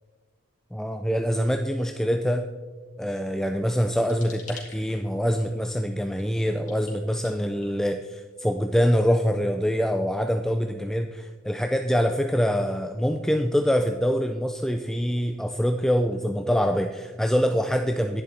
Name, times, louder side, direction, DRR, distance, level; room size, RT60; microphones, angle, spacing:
voice 1, 0.7-2.5 3.0-18.2, equal, ahead, 5 dB, 0.3 m, -25 dB
sound 1, 3.6-8.3, left 5 dB, 35° left, 2.8 m, -50 dB
10.5 x 10.5 x 4.2 m, 1.5 s
head